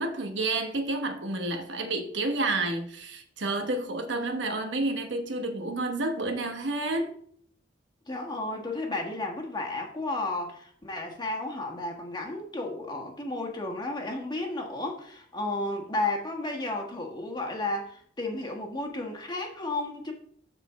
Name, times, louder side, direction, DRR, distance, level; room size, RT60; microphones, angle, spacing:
voice 1, 0.0-7.1, right 2 dB, 80° right, 1.1 m, -30 dB
voice 2, 8.1-20.1, left 2 dB, 25° left, 1.4 m, -33 dB
6.9 x 4.5 x 6.8 m
head